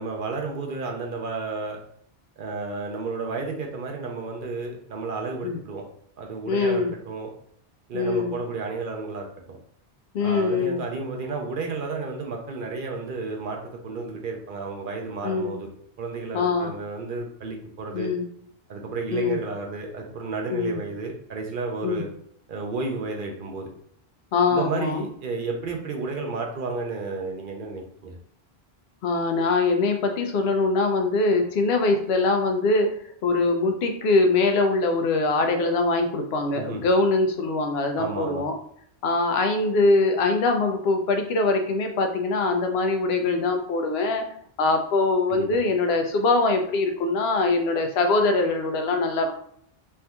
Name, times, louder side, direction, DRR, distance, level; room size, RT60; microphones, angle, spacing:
voice 1, 0.0-1.8 2.4-5.9 6.2-7.3 7.9-9.6 10.2-13.6 13.8-15.7 16.0-18.1 18.7-22.1 22.5-23.7 24.5-28.2 36.5-36.8 38.0-38.5 45.3-45.6, right 3 dB, 60° right, 1 dB, 0.7 m, -32 dB
voice 2, 6.5-6.9 7.9-8.4 10.1-10.8 15.2-15.6 16.3-16.7 17.9-18.3 19.1-19.4 20.5-20.8 21.8-22.0 24.3-25.0 29.0-32.9 33.2-38.5 39.0-44.2 44.6-49.3, left 3 dB, 80° left, 5 dB, 0.8 m, -23 dB
3.3 x 2.7 x 2.2 m, 0.66 s
omnidirectional pair, 1.0 m